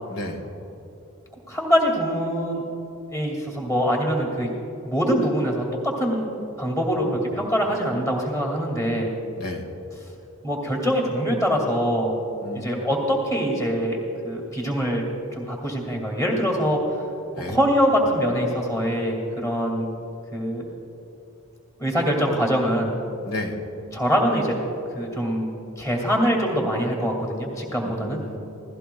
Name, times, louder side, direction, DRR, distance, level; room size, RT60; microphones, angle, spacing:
voice 1, 0.1-0.4 7.0-7.5 9.4-9.7 12.4-12.9 17.3-17.6 23.3-23.6 27.8-28.4, left 1 dB, 75° left, 3 dB, 1.8 m, -33 dB
voice 2, 1.5-2.6 3.1-4.5 4.8-6.3 6.6-9.1 10.4-12.2 12.5-14.0 14.2-15.0 15.3-16.8 17.5-19.9 20.3-20.7 21.8-22.9 23.9-24.5 24.9-25.5 25.8-28.2, equal, 15° left, -1 dB, 2.2 m, -23 dB
27.0 x 17.0 x 2.3 m, 2.9 s
head